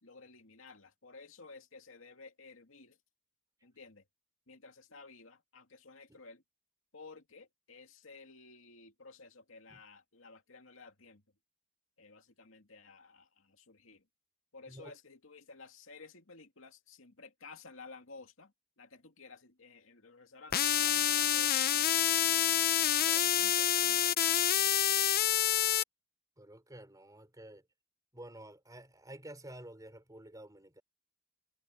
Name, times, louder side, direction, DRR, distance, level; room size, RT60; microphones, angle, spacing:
voice 1, 0.0-3.0 3.6-4.0 4.5-6.4 6.9-11.2 12.0-14.0 14.5-22.6 23.0-24.3, left 4 dB, 75° left, 2.5 m, -54 dB
sound 1, 20.5-25.8, left 11 dB, 50° left, 0.7 m, -27 dB
voice 2, 26.4-27.7 28.1-30.8, right 1 dB, 20° right, 4.2 m, -50 dB
head